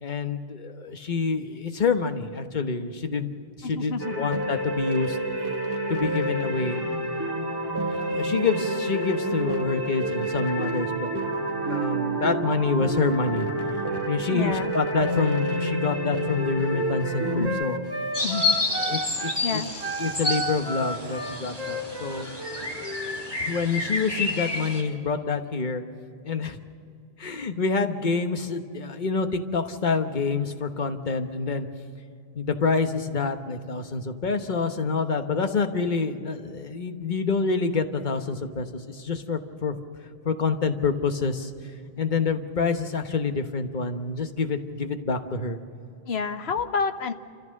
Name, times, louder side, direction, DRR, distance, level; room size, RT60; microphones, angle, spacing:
voice 1, 0.0-3.3 3.6-5.2 5.9-6.8 7.7-11.1 11.6-13.5 14.1-17.8 18.8-19.6 20.0-22.3 23.4-25.8 26.2-26.6 27.2-31.7 32.3-39.8 40.2-41.5 42.0-45.6, left 4 dB, 50° left, 7 dB, 1.3 m, -27 dB
voice 2, 3.6-4.4 14.3-14.7 17.4-17.6 18.2-18.6 19.4-19.7 46.1-47.1, left 5 dB, 75° left, 9 dB, 1.2 m, -29 dB
sound 1, 4.0-17.5, right 1 dB, 20° right, 1.7 m, -29 dB
Wind instrument woodwind instrument, 16.3-19.4 19.8-23.2, right 1 dB, 70° right, 2.5 m, -33 dB
sound 2, 18.1-24.8, left 3 dB, 25° left, 2.5 m, -30 dB
27.5 x 14.5 x 6.5 m, 2.5 s
omnidirectional pair, 1.1 m